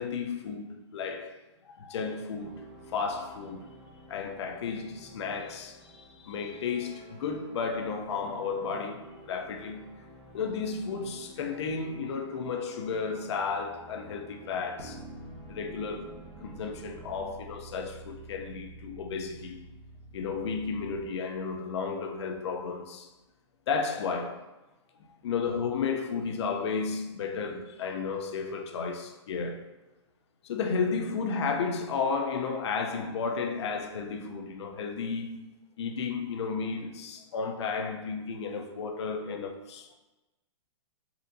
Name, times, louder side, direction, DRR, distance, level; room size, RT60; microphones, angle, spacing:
voice 1, 0.0-1.4 1.6-3.8 4.1-9.9 10.3-15.0 15.5-16.1 16.4-19.6 20.1-23.1 23.7-24.5 25.2-29.7 30.4-35.5 35.8-39.9, left 5 dB, 60° left, 0.6 m, -33 dB
sound 1, 2.3-17.3, right 1 dB, 25° right, 0.8 m, -52 dB
sound 2, 14.8-21.0, right 2 dB, 60° right, 0.8 m, -48 dB
4.2 x 2.6 x 2.6 m
hypercardioid pair, 150°, 16 cm